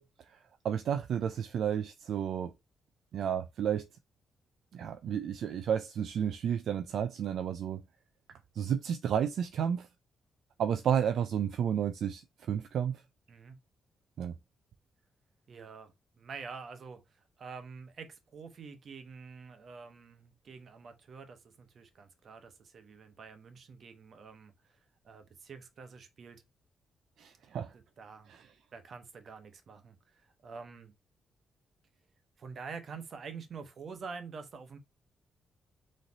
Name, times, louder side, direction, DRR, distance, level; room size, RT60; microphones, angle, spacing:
voice 1, 0.0-2.5 3.1-3.9 4.7-7.8 8.3-9.9 10.6-13.0 14.2-14.3 27.2-27.7 28.3-28.5, right 8 dB, 75° right, 0.4 m, -32 dB
voice 2, 15.5-24.8 25.0-26.4 28.0-28.3 28.7-30.9 32.4-34.8, right 5 dB, 55° right, 1.0 m, -47 dB
3.9 x 3.2 x 4.0 m
cardioid pair, 90°, 0 cm